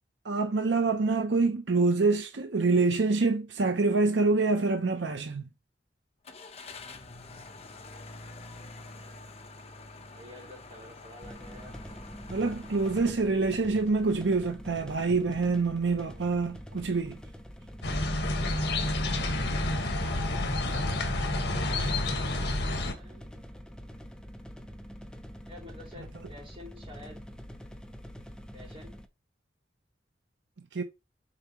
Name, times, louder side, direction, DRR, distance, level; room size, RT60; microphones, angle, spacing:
voice 1, 0.2-5.5 12.3-17.2 30.7-30.8, right 3 dB, 75° right, 0.7 m, -26 dB
Car / Engine starting, 6.2-13.1, left 3 dB, 35° left, 1.0 m, -47 dB
voice 2, 10.1-11.7 21.2-23.3 25.4-27.2 28.5-29.0, left 1 dB, 30° right, 3.6 m, -49 dB
sound 1, 11.2-29.1, equal, 5° left, 0.7 m, -45 dB
sound 2, 17.8-22.9, left 2 dB, 65° left, 1.6 m, -29 dB
6.9 x 4.8 x 3.1 m
head